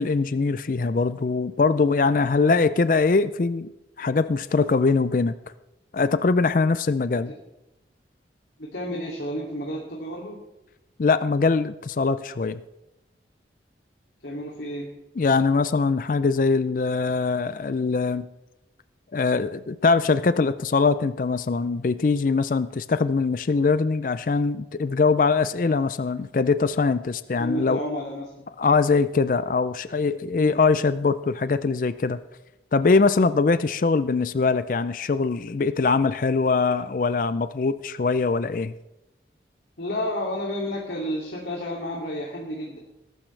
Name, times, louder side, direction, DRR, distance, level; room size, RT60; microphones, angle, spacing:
voice 1, 0.0-3.7 4.0-5.3 5.9-7.3 11.0-12.6 15.2-18.3 19.1-27.8 28.6-32.2 32.7-38.7, left 4 dB, 45° left, 13 dB, 0.4 m, -22 dB
voice 2, 8.6-10.4 14.2-14.9 27.4-28.3 30.4-30.6 39.8-42.8, equal, 75° left, -2 dB, 2.5 m, -31 dB
20.0 x 12.0 x 3.3 m, 0.95 s
head